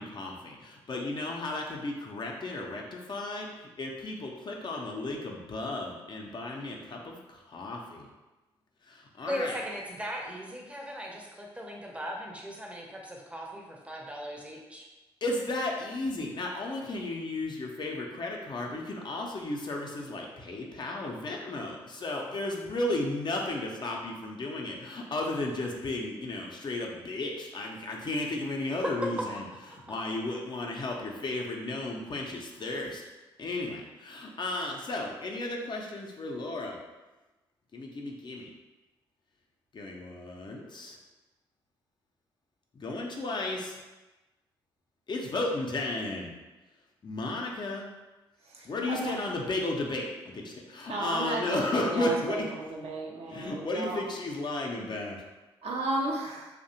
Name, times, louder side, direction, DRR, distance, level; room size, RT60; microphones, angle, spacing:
voice 1, 0.0-8.1 8.9-9.6 15.2-29.4 29.7-33.0 33.4-36.8 37.7-38.5 39.7-41.0 42.7-43.8 45.1-46.3 47.0-47.9 48.6-52.6 53.3-55.2, left 2 dB, 40° left, 0 dB, 0.5 m, -34 dB
voice 2, 9.3-14.9, equal, 10° right, -1 dB, 0.6 m, -38 dB
voice 3, 48.6-49.3 50.9-54.1 55.6-56.5, right 2 dB, 60° right, -1 dB, 0.5 m, -34 dB
2.6 x 2.1 x 2.7 m, 1.1 s
hypercardioid pair, 40°, 12 cm